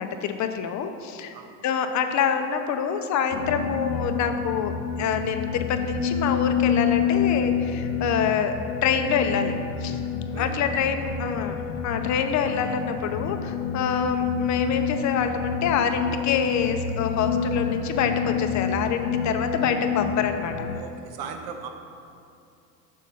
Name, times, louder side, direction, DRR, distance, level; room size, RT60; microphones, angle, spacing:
voice 1, 0.0-1.3 1.6-8.5 8.8-9.5 9.8-10.0 10.4-11.6 11.8-20.5, left 7 dB, 40° left, 7 dB, 0.6 m, -26 dB
sound 1, 3.3-20.8, left 6 dB, 85° left, 0.6 m, -28 dB
voice 2, 10.3-10.7 11.0-11.1 20.7-21.7, right 6 dB, 50° right, 5 dB, 0.9 m, -38 dB
6.4 x 4.0 x 5.4 m, 2.5 s
hypercardioid pair, 85°, 46 cm